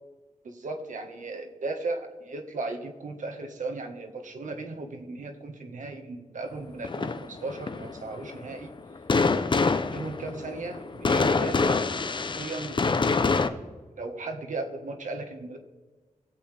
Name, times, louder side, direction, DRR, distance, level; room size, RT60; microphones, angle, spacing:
voice 1, 0.4-8.7 9.5-13.6 14.0-15.6, right 3 dB, 70° right, 4 dB, 1.5 m, -36 dB
sound 1, 6.8-13.5, left 4 dB, 35° left, 0.6 m, -26 dB
20.0 x 7.9 x 3.4 m, 1.3 s
wide cardioid pair, 125°, 13 cm